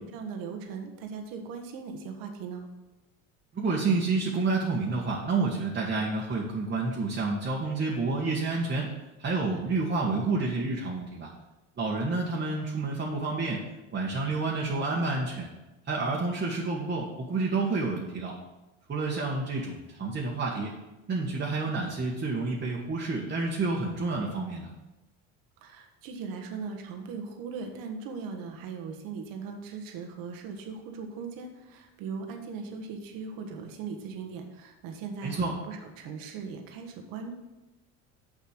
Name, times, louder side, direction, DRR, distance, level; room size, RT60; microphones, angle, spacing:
voice 1, 0.0-2.7 25.6-37.3, right 5 dB, 65° right, 4 dB, 1.4 m, -39 dB
voice 2, 3.5-8.9 9.2-11.3 11.8-13.6 13.9-15.5 15.9-18.4 18.9-20.7 21.1-24.7 35.2-35.5, right 3 dB, 30° right, -3 dB, 1.7 m, -29 dB
7.1 x 5.5 x 6.6 m, 1.0 s
supercardioid pair, 90°, 37 cm